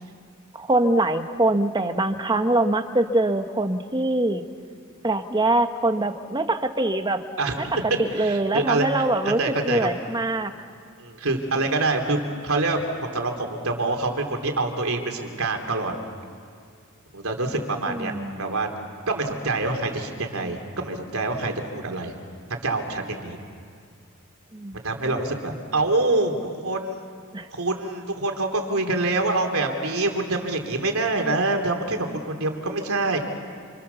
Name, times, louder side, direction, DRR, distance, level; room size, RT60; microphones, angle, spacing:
voice 1, 0.5-4.4 5.0-7.2 7.6-7.7 8.0-10.5 17.9-18.4 24.5-24.8 27.3-27.5, right 2 dB, 20° right, 7 dB, 1.3 m, -23 dB
voice 2, 8.2-9.0 9.4-9.9 11.0-12.2 12.4-15.9 17.1-18.1 18.4-18.7 19.1-22.1 22.5-23.4 24.7-26.4 26.6-26.9 27.5-33.2, right 2 dB, 85° right, 4 dB, 3.3 m, -25 dB
28.0 x 28.0 x 7.1 m, 2.2 s
head